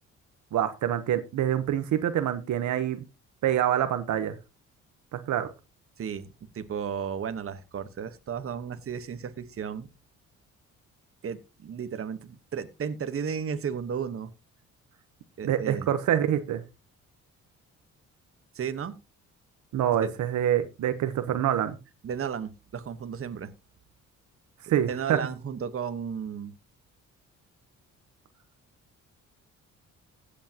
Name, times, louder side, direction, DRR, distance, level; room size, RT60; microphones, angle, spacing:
voice 1, 0.5-3.0 3.4-4.4 5.1-5.5 15.4-16.6 19.7-21.8 24.7-25.2, right 10 dB, 75° right, 9 dB, 1.1 m, -26 dB
voice 2, 6.0-9.9 11.2-14.3 15.4-15.9 18.5-18.9 20.0-20.1 22.0-23.5 24.6-26.5, right 7 dB, 45° right, 10 dB, 1.3 m, -34 dB
16.0 x 8.4 x 3.0 m, 0.29 s
cardioid pair, 90°, 30 cm